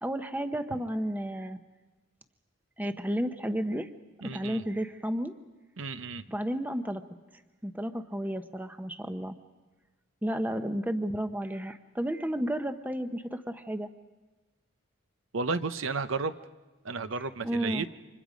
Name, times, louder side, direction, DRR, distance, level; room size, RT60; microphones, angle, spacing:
voice 1, 0.0-1.6 2.8-3.9 4.2-5.4 6.3-7.0 7.6-9.3 10.2-13.9 17.1-17.9, equal, 10° right, 9 dB, 0.8 m, -32 dB
voice 2, 4.2-4.6 5.8-6.2 15.3-16.3 16.8-17.9, right 4 dB, 65° right, 12 dB, 0.8 m, -32 dB
29.5 x 25.5 x 5.2 m, 1.2 s
head